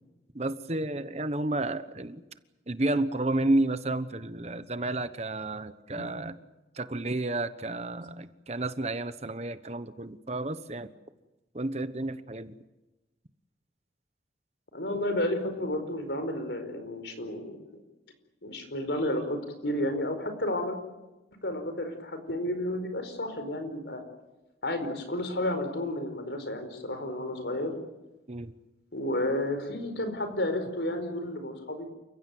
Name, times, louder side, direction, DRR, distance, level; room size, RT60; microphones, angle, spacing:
voice 1, 0.3-2.2 2.7-6.4 6.8-10.9 11.5-12.5 28.3-28.5, right 2 dB, 35° right, 12 dB, 1.1 m, -31 dB
voice 2, 14.7-17.6 18.4-20.8 21.4-24.0 24.6-27.7 28.9-31.9, left 1 dB, 85° left, 8 dB, 4.8 m, -31 dB
29.0 x 16.0 x 9.3 m, 1.1 s
head